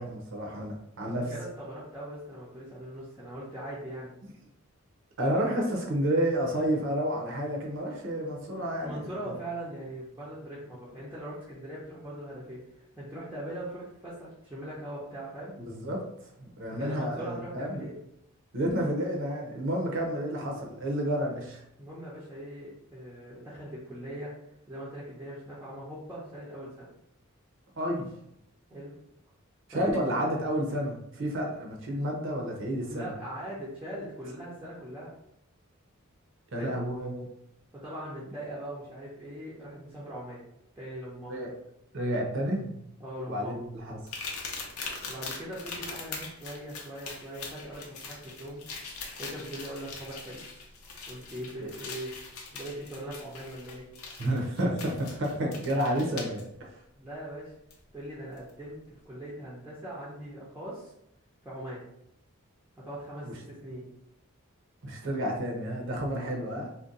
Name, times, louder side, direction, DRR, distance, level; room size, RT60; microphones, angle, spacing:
voice 1, 0.0-1.3 5.2-9.0 15.6-16.0 16.4-17.9 18.5-21.6 27.8-28.1 29.7-33.1 36.5-37.3 41.3-41.5 41.9-42.7 43.3-44.0 51.6-51.7 54.2-56.8 63.2-63.4 64.8-66.7, equal, 60° right, 0 dB, 0.7 m, -30 dB
voice 2, 1.0-4.1 8.6-15.5 16.7-18.0 21.8-24.3 24.7-26.9 28.7-28.9 29.7-30.2 32.8-35.1 36.6-36.8 37.7-40.4 40.8-41.4 43.0-43.6 45.1-48.6 49.2-50.4 51.1-52.1 52.5-53.9 57.0-57.5 57.9-60.9 61.4-61.9 62.8-63.9, right 1 dB, 10° right, -9 dB, 0.6 m, -41 dB
sound 1, 44.1-56.4 57.7-57.8 58.4-58.5, left 4 dB, 90° left, 0.6 m, -42 dB
2.6 x 2.2 x 3.8 m, 0.77 s
head